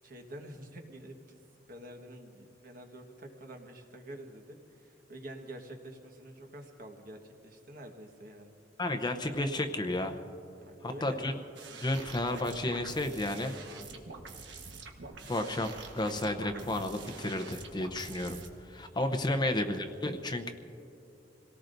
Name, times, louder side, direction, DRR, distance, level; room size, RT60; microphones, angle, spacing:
voice 1, 0.0-1.4 1.7-8.5 10.6-11.2 13.9-14.2, right 1 dB, 50° right, 3 dB, 1.4 m, -48 dB
voice 2, 8.8-10.2 10.8-11.3 11.8-13.5 15.3-20.5, left 1 dB, 25° left, 7 dB, 0.7 m, -32 dB
sound 1, 11.6-18.5, right 4 dB, 90° right, 1.3 m, -46 dB
27.5 x 18.0 x 2.6 m, 2.7 s
head